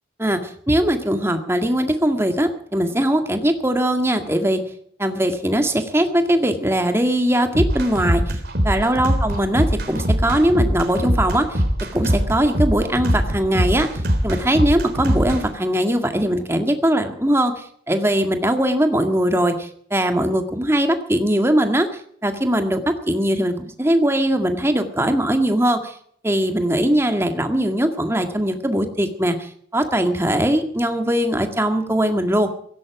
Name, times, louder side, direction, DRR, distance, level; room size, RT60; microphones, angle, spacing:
voice 1, 0.2-4.6 5.0-8.3 8.6-11.6 11.9-21.9 22.2-25.9 26.2-32.5, right 1 dB, 15° right, 6 dB, 1.9 m, -20 dB
sound 1, 7.5-15.4, equal, 50° right, 3.6 m, -22 dB
16.5 x 16.5 x 4.9 m, 0.64 s
head